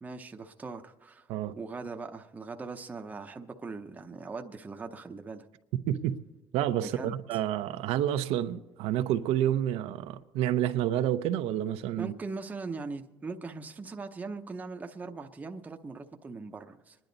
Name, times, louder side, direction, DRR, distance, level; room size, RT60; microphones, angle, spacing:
voice 1, 0.0-1.3 1.6-5.5 6.8-7.4 12.0-17.0, right 4 dB, 15° right, 0.8 m, -40 dB
voice 2, 6.5-12.1, right 11 dB, 90° right, 0.8 m, -29 dB
25.0 x 10.5 x 4.0 m
cardioid pair, 160°, 10 cm